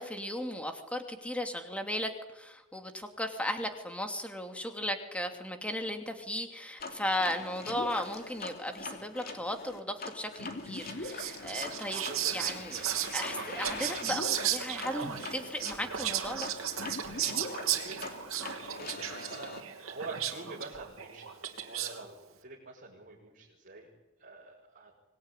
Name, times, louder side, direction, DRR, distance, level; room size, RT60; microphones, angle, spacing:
voice 1, 0.0-12.8 13.1-16.5, left 1 dB, 5° left, 5 dB, 2.7 m, -36 dB
sound 1, 6.8-19.6, left 3 dB, 45° left, 3.1 m, -42 dB
Whispering, 10.7-22.1, right 10 dB, 70° right, 3.0 m, -35 dB
voice 2, 12.1-12.5 17.7-18.2 18.8-23.9 24.2-24.9, right 3 dB, 45° right, -4 dB, 5.9 m, -46 dB
25.5 x 20.0 x 10.0 m, 1.0 s
head